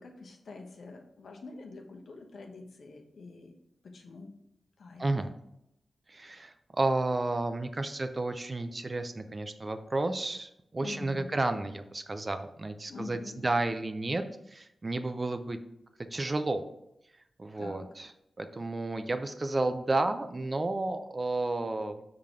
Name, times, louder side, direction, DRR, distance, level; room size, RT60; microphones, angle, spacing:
voice 1, 0.0-3.5 3.8-4.4 4.8-5.2 10.8-11.3 12.9-13.4 17.6-17.9, left 3 dB, 70° left, 3 dB, 1.0 m, -45 dB
voice 2, 5.0-5.3 6.1-14.2 14.5-15.6 16.1-16.7 17.4-18.1 18.4-22.1, right 2 dB, 30° right, 8 dB, 0.5 m, -32 dB
6.0 x 3.8 x 4.9 m, 0.82 s
wide cardioid pair, 125°, 0 cm